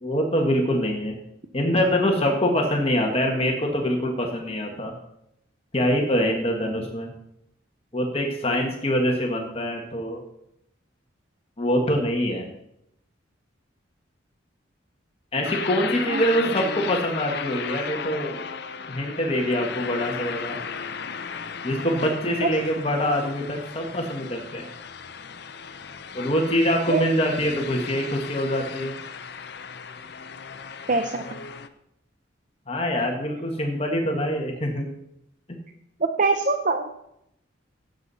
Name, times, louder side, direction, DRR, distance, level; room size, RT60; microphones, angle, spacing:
voice 1, 0.0-1.1 1.5-4.9 5.7-7.1 7.9-10.2 11.6-12.5 15.3-18.4 18.9-20.6 21.6-24.7 26.1-29.0 32.7-34.9, equal, 30° left, 1 dB, 1.6 m, -24 dB
sound 1, 15.4-31.7, left 6 dB, 55° left, 0.7 m, -35 dB
voice 2, 16.1-16.5 22.4-22.5 26.9-27.0 30.9-31.2 36.0-36.9, right 3 dB, 40° right, 7 dB, 0.7 m, -23 dB
16.5 x 7.9 x 4.2 m, 0.80 s
head